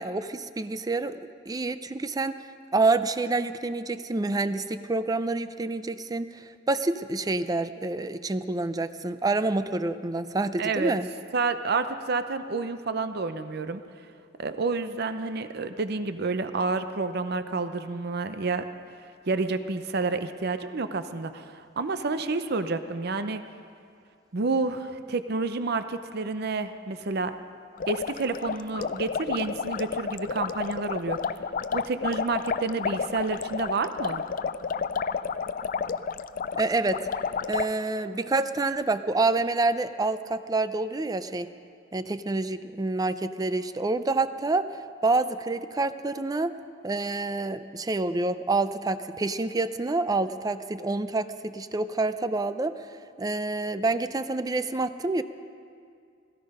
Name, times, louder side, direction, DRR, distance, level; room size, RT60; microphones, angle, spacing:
voice 1, 0.0-2.4 2.7-11.1 36.6-37.1 37.5-41.5 41.9-46.6 46.8-52.9 53.2-55.2, right 3 dB, 20° right, 12 dB, 0.5 m, -27 dB
voice 2, 10.6-11.0 11.3-13.8 14.4-18.6 19.3-23.4 24.3-27.3 27.9-31.2 31.7-34.2, right 3 dB, 60° right, 10 dB, 0.7 m, -29 dB
sound 1, 27.7-37.7, left 6 dB, 45° left, 0.4 m, -31 dB
17.0 x 15.0 x 5.4 m, 2.3 s
head